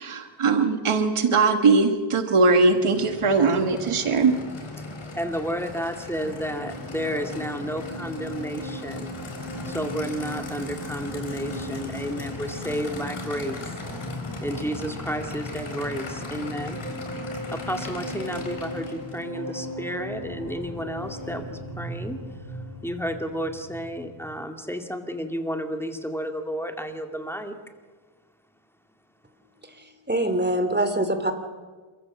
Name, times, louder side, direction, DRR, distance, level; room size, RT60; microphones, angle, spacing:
voice 1, 0.0-4.4, right 4 dB, 90° right, 7 dB, 1.8 m, -20 dB
Aircraft / Idling, 2.4-19.3, left 3 dB, 75° left, 4.2 m, -38 dB
voice 2, 5.2-9.2 9.6-13.8 14.4-16.8 17.5-27.6, equal, 5° left, 5 dB, 2.4 m, -32 dB
sound 1, 5.9-24.4, equal, 65° right, 6.9 m, -38 dB
voice 3, 30.1-31.3, right 1 dB, 20° right, 8 dB, 2.8 m, -23 dB
28.0 x 14.5 x 7.4 m, 1.4 s
cardioid pair, 55°, 49 cm